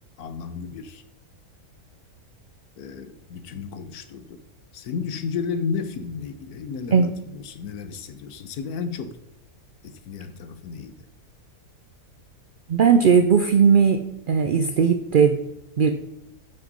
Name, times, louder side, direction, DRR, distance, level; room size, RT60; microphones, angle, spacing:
voice 1, 0.2-1.0 2.8-4.4 4.7-9.2 9.8-11.0, left 5 dB, 85° left, 11 dB, 1.3 m, -33 dB
voice 2, 12.7-14.0 14.3-15.4 15.8-15.9, right 6 dB, 70° right, 7 dB, 0.5 m, -17 dB
9.4 x 5.7 x 5.3 m, 0.82 s
omnidirectional pair, 1.6 m